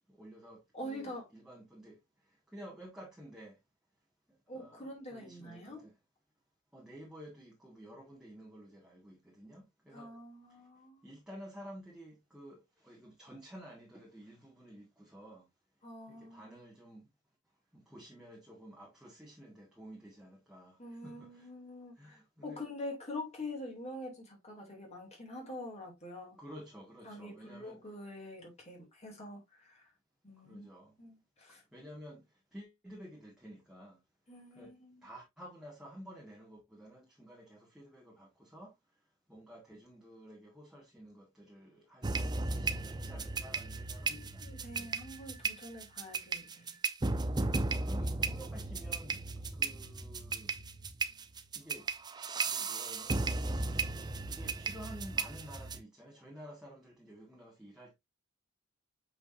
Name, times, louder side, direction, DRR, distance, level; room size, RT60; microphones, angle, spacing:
voice 1, 0.1-2.0 2.5-3.6 4.3-6.0 6.7-10.1 11.0-15.5 16.1-17.1 17.7-21.5 22.0-22.6 26.4-27.8 30.4-30.9 31.5-34.0 34.5-34.7 35.0-38.7 39.3-44.5 44.8-45.3 46.5-46.7 47.6-49.2 49.5-50.5 51.5-51.9 52.4-53.7 54.2-57.9, equal, 5° right, 1.8 m, -52 dB
voice 2, 0.7-1.3 4.5-5.8 9.9-11.1 15.8-16.5 20.8-26.4 27.0-29.8 30.2-30.7 31.0-31.6 34.3-35.0 44.1-46.8, left 1 dB, 35° left, 2.8 m, -45 dB
sound 1, 42.0-55.8, right 3 dB, 20° right, 0.6 m, -35 dB
8.0 x 5.1 x 2.6 m
head